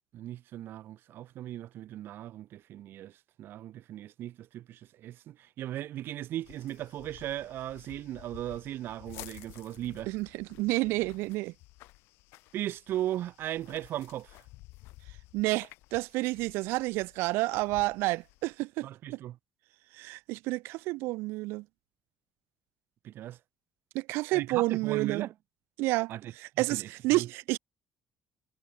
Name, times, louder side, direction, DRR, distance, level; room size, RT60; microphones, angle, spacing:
voice 1, 0.1-3.1 3.4-10.1 12.5-14.4 18.8-19.4 23.0-23.4 24.3-25.3 26.1-27.3, right 13 dB, 65° right, 1.5 m, -37 dB
sound 1, 6.4-18.6, left 20 dB, 90° left, 6.0 m, -53 dB
voice 2, 10.1-11.5 15.3-19.2 20.0-21.6 23.9-25.3 25.8-26.1 26.4-27.6, right 21 dB, 90° right, 1.2 m, -30 dB
cardioid pair, 100°, 4 cm